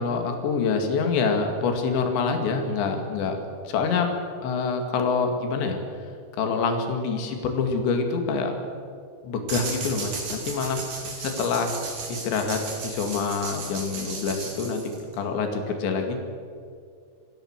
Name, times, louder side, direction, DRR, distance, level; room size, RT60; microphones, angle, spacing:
voice 1, 0.0-4.1 4.4-5.8 6.4-8.5 9.2-10.8 11.2-11.8 12.1-16.2, left 4 dB, 80° left, 4 dB, 4.5 m, -26 dB
sound 1, 9.5-15.2, right 4 dB, 50° right, 4.9 m, -35 dB
27.0 x 16.0 x 7.4 m, 2.3 s
omnidirectional pair, 5.0 m